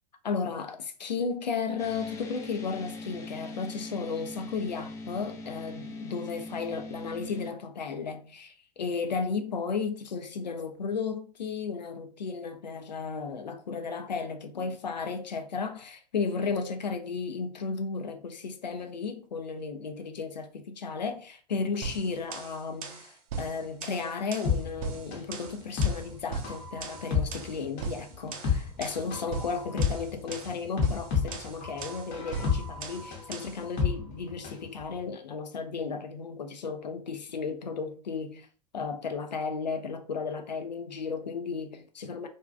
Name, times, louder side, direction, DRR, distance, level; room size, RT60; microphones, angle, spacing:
voice 1, 0.2-38.5 38.7-42.3, left 5 dB, 85° left, 0.4 m, -34 dB
sound 1, 1.8-7.5, left 2 dB, 15° left, 0.3 m, -41 dB
sound 2, 21.8-33.6, right 5 dB, 55° right, 0.6 m, -40 dB
sound 3, 24.4-34.7 35.0-35.1, left 6 dB, 35° left, 0.8 m, -30 dB
2.5 x 2.2 x 2.3 m
figure-of-eight pair, 95°, 21 cm